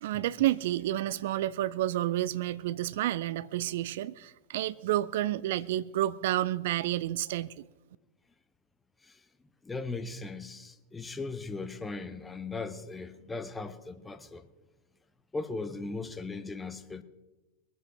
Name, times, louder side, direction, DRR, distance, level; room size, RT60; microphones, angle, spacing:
voice 1, 0.0-7.6, right 14 dB, 55° right, 0.4 m, -30 dB
voice 2, 9.6-14.5 15.3-17.0, left 3 dB, 10° left, 1.0 m, -38 dB
22.5 x 7.8 x 6.2 m
figure-of-eight pair, 90°, 0 cm